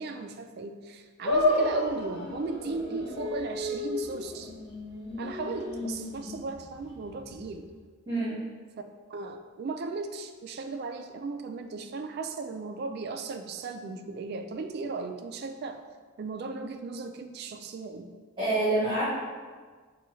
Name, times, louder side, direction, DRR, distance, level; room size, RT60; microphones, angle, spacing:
voice 1, 0.0-4.5 5.2-7.7 9.1-15.8 16.2-18.1, right 4 dB, 50° right, 6 dB, 0.3 m, -36 dB
sound 1, 1.2-7.7, left 1 dB, 25° left, 0.7 m, -31 dB
voice 2, 18.4-19.0, right 2 dB, 20° right, -13 dB, 1.2 m, -26 dB
6.7 x 2.3 x 3.0 m, 1.5 s
head